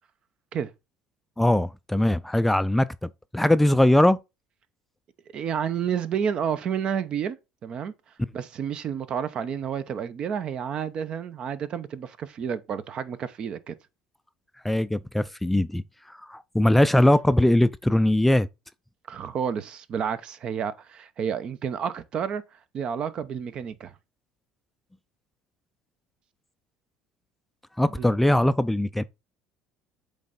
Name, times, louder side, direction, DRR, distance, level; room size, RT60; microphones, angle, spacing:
voice 1, 1.4-2.9 3.3-4.2 14.6-18.5 27.8-29.0, left 1 dB, 5° left, 0.4 m, -21 dB
voice 2, 5.3-7.4 7.6-7.9 8.3-13.7 19.1-22.4 22.7-23.9 28.0-28.1, right 8 dB, 50° right, 0.8 m, -30 dB
8.2 x 3.3 x 4.1 m
hypercardioid pair, 80°, 2 cm